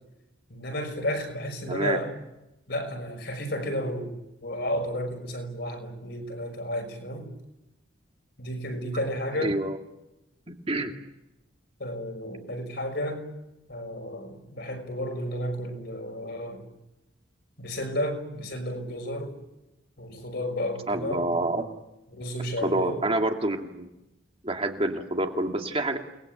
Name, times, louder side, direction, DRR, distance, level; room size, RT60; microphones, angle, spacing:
voice 1, 0.5-2.1 2.7-4.1 4.4-7.3 8.4-9.6 11.8-13.3 13.7-16.6 17.6-19.3 20.0-21.7 22.1-23.0, left 1 dB, 55° left, 5 dB, 5.9 m, -32 dB
voice 2, 1.7-2.0 9.4-9.8 10.7-10.9 20.9-21.6 22.6-23.9 24.4-26.0, right 1 dB, 30° right, 3 dB, 2.4 m, -27 dB
29.5 x 20.5 x 9.2 m, 0.95 s
head